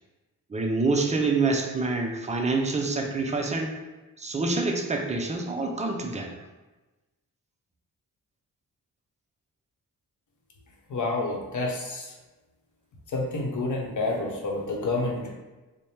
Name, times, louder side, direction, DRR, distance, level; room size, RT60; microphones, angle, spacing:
voice 1, 0.5-3.7 4.2-6.4, right 3 dB, 20° right, 2 dB, 0.5 m, -26 dB
voice 2, 10.9-12.1 13.1-15.3, left 2 dB, 55° left, -1 dB, 0.9 m, -29 dB
3.3 x 2.1 x 4.2 m, 1.1 s
cardioid pair, 90°, 37 cm